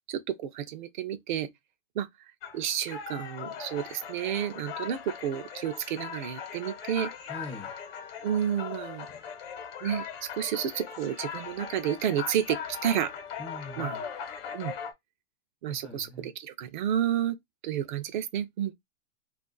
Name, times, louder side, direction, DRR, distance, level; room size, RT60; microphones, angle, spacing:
voice 1, 0.1-1.5 2.0-2.3 2.5-7.1 8.2-9.1 9.8-13.1 13.8-14.0 14.5-14.7 15.6-17.4 17.6-18.7, right 10 dB, 45° right, 0.5 m, -31 dB
sound 1, 2.4-14.9, left 7 dB, 55° left, 1.0 m, -39 dB
voice 2, 7.3-7.7 13.4-14.0 15.7-16.3, left 1 dB, 5° left, 0.4 m, -42 dB
2.4 x 2.4 x 3.8 m
supercardioid pair, 170°, 34 cm